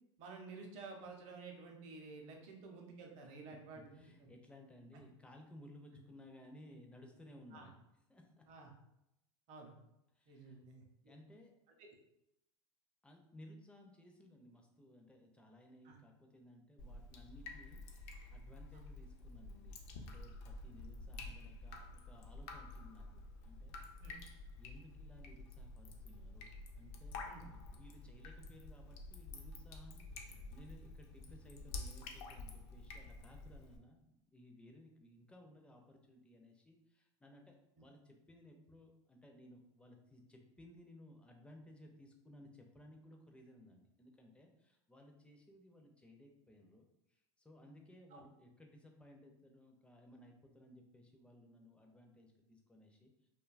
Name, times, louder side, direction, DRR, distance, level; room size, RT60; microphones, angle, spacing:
voice 1, 0.2-3.9 7.5-7.7 8.5-8.7 9.5-9.8 10.3-11.2 15.8-16.0 24.0-24.2 27.2-27.4 48.1-48.2, right 4 dB, 50° right, 2 dB, 0.7 m, -52 dB
voice 2, 3.5-7.7 8.1-8.5 10.1-10.6 11.0-11.5 13.0-23.8 24.6-26.5 26.8-53.1, left 1 dB, 10° left, 2 dB, 0.4 m, -59 dB
Drip, 16.8-33.8, left 3 dB, 65° left, 0.5 m, -50 dB
2.7 x 2.2 x 2.4 m, 0.83 s
hypercardioid pair, 105°, 15 cm